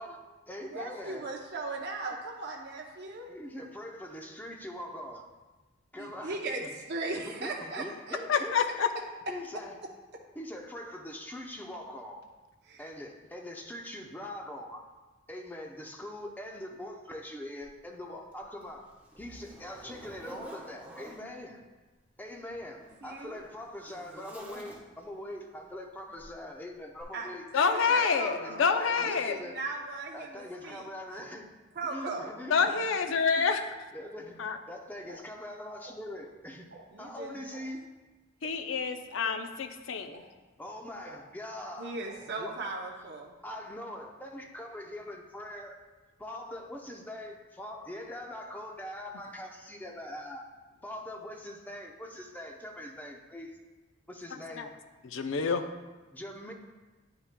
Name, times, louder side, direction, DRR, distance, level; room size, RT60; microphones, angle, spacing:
voice 1, 0.0-1.4 2.1-2.2 3.2-5.2 5.9-6.8 7.1-8.9 9.3-9.8 10.3-12.2 12.8-14.8 15.3-18.9 19.2-21.6 22.2-29.6 30.1-31.5 31.9-32.8 33.1-33.5 33.9-34.4 34.7-36.7 37.0-37.8 40.6-42.0 42.4-43.1 43.4-45.8 46.2-50.4 50.8-53.5 54.1-54.7 56.1-56.5, left 1 dB, 10° left, 1 dB, 0.6 m, -42 dB
voice 2, 0.6-3.3 6.0-8.2 12.7-12.9 23.0-23.4 27.1-27.3 27.7-28.6 29.0-30.9 31.8-32.3 36.9-37.4 41.8-43.3, right 3 dB, 55° right, 0 dB, 0.6 m, -38 dB
voice 3, 8.3-8.9 27.5-29.4 32.5-33.8 34.4-34.6 38.4-40.2 54.6-54.7 55.0-55.6, left 5 dB, 70° left, 7 dB, 0.5 m, -27 dB
Zipper (clothing), 17.6-17.7 18.3-21.3 22.2-25.2 26.2-26.4 27.0-27.1, right 1 dB, 10° right, 0.9 m, -49 dB
sound 1, 35.1-35.2 35.8-35.9 36.7-36.8 37.5-37.6 38.4-38.5 39.2-39.3 40.1-40.2 41.1-41.2 42.1-42.2, right 3 dB, 80° right, 1.7 m, -49 dB
9.4 x 5.7 x 2.2 m, 1.2 s
head